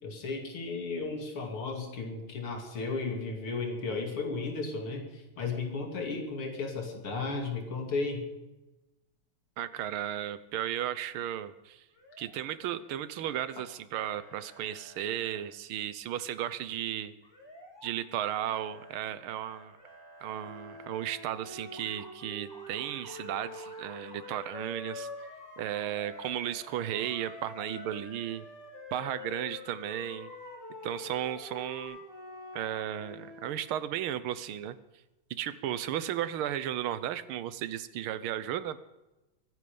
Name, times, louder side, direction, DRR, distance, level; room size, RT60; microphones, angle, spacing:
voice 1, 0.0-8.3, left 3 dB, 85° left, 2 dB, 3.4 m, -34 dB
voice 2, 9.6-11.8 12.2-17.1 17.8-19.8 20.2-25.1 25.6-28.4 28.9-30.3 30.8-32.0 32.5-34.8 35.3-38.8, right 11 dB, 80° right, 14 dB, 1.6 m, -35 dB
Motor vehicle (road) / Siren, 11.9-12.9 13.2-13.7 14.1-15.4 17.2-17.9 18.2-21.1 21.6-22.1 22.5-31.8, right 1 dB, 10° left, 3.3 m, -53 dB
sound 1, 20.3-26.3 26.9-33.6, left 2 dB, 50° left, 4.2 m, -46 dB
23.5 x 9.6 x 5.3 m, 1.0 s
omnidirectional pair, 2.3 m